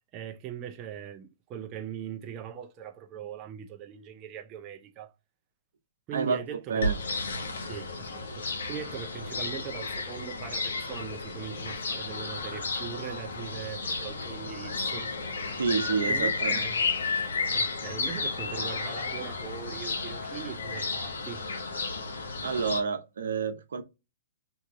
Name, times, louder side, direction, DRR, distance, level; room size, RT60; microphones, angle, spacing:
voice 1, 0.1-5.1 6.1-6.8 7.7-15.1 16.0-16.9 17.5-21.4, right 9 dB, 30° right, 0.5 m, -41 dB
voice 2, 6.1-6.4 6.7-6.9 15.6-16.6 22.4-23.8, right 5 dB, 80° right, 0.8 m, -29 dB
sound 1, 6.8-22.8, left 3 dB, 85° left, 0.9 m, -32 dB
2.8 x 2.5 x 3.6 m
hypercardioid pair, 140°, 0 cm